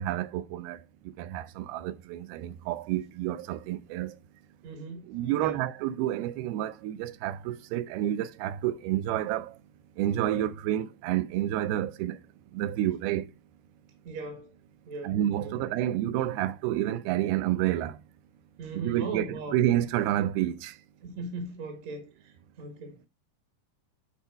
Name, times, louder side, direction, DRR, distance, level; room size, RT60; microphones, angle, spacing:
voice 1, 0.0-4.2 5.1-9.6 10.0-12.2 12.5-13.3 15.0-18.0 18.7-20.8, right 13 dB, 85° right, 2.6 m, -29 dB
voice 2, 4.6-5.0 5.3-5.6 14.0-14.5 14.9-15.7 18.6-19.6 21.0-23.0, right 3 dB, 55° right, 2.3 m, -39 dB
10.5 x 4.4 x 4.6 m
omnidirectional pair, 4.4 m